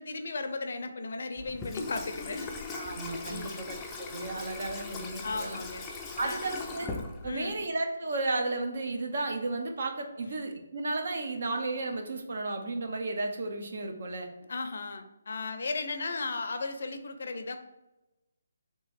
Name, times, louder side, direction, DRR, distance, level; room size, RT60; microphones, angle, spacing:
voice 1, 0.0-2.5 3.3-3.7 5.2-5.8 6.2-6.5 7.2-7.6 14.5-17.6, left 3 dB, 60° left, 7 dB, 0.5 m, -35 dB
Water tap faucet / Sink (filling or washing), 1.4-7.6, left 4 dB, 10° left, 0.4 m, -40 dB
voice 2, 2.7-5.6 6.2-7.0 7.2-14.3, right 2 dB, 60° right, 4 dB, 0.7 m, -33 dB
3.5 x 3.0 x 4.2 m, 0.99 s
hypercardioid pair, 165°, 0 cm